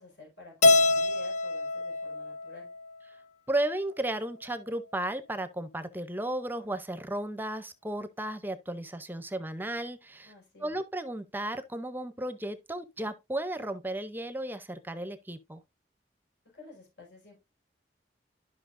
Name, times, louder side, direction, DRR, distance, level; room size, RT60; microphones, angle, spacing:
voice 1, 0.0-2.7 10.2-10.7 16.5-17.4, left 3 dB, 85° left, 5.1 m, -51 dB
Keyboard (musical), 0.6-3.0, left 2 dB, 45° left, 0.5 m, -25 dB
voice 2, 3.5-10.3 10.6-15.6, right 1 dB, 10° right, 0.6 m, -34 dB
12.5 x 5.4 x 2.5 m
head